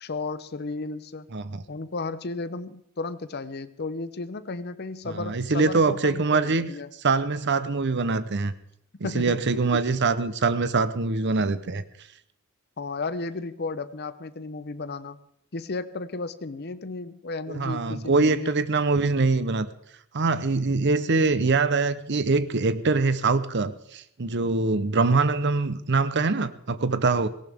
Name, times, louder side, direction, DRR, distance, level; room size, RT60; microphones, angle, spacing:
voice 1, 0.0-1.3 1.7-6.9 9.0-9.4 12.8-15.2 15.5-18.5, left 3 dB, 50° left, 13 dB, 0.8 m, -34 dB
voice 2, 1.3-1.6 5.0-6.7 7.0-8.5 9.0-11.8 17.5-19.7 20.1-27.3, right 3 dB, 60° right, 14 dB, 0.9 m, -24 dB
18.0 x 18.0 x 3.6 m, 0.73 s
head